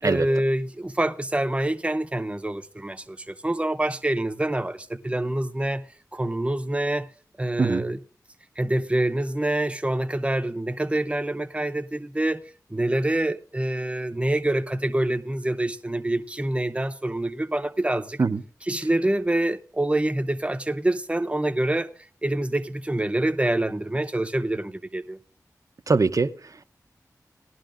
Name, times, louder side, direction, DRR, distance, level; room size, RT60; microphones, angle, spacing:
voice 1, 0.0-5.8 6.1-7.1 7.4-8.0 8.6-12.4 12.7-18.2 18.7-21.9 22.2-25.2, right 1 dB, 15° right, 0.7 m, -26 dB
voice 2, 25.9-26.6, right 4 dB, 55° right, 0.7 m, -23 dB
18.5 x 11.0 x 2.5 m
cardioid pair, 40°, 7 cm